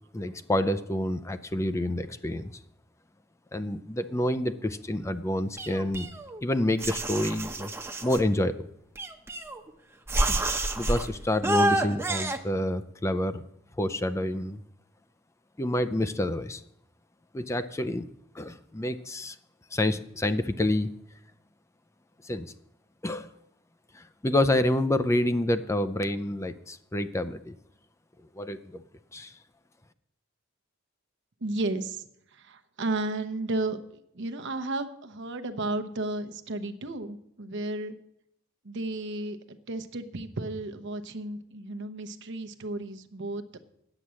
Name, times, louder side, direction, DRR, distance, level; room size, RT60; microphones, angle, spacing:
voice 1, 0.1-2.5 3.5-6.1 6.4-7.7 8.0-8.7 10.8-13.4 13.8-14.6 15.6-16.6 17.3-18.1 18.3-19.4 19.7-20.9 22.2-22.5 23.0-23.3 23.9-27.6 28.4-28.8 29.1-29.3, left 1 dB, 15° left, 11 dB, 0.5 m, -28 dB
sound 1, 5.6-6.4 6.8-8.2 9.0-9.7 10.1-11.1 11.4-12.4, right 1 dB, 15° right, 0.8 m, -28 dB
voice 2, 31.4-32.1 32.3-37.9 38.6-43.6, right 2 dB, 60° right, 7 dB, 0.9 m, -33 dB
9.9 x 8.3 x 7.5 m, 0.76 s
head